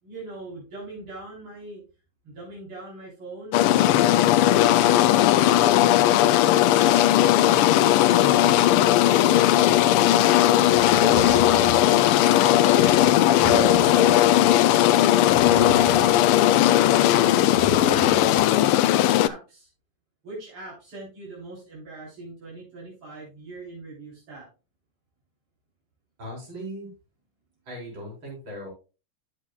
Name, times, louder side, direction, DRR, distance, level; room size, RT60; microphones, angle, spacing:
voice 1, 0.0-1.8 2.2-5.1 5.4-6.8 7.5-11.9 12.7-12.9 13.4-14.0 15.4-16.1 16.9-19.7 20.2-24.5, right 2 dB, 90° right, -5 dB, 4.8 m, -40 dB
sound 1, 3.5-19.3, left 13 dB, 90° left, 1.5 m, -18 dB
sound 2, 10.7-12.5 13.0-14.4 14.7-14.8 15.0-16.4 16.8-18.4, equal, 5° right, 1.1 m, -33 dB
voice 2, 12.7-13.2 26.2-26.9 27.7-28.7, left 1 dB, 65° right, -3 dB, 5.2 m, -37 dB
12.0 x 7.5 x 2.3 m, 0.31 s
omnidirectional pair, 2.4 m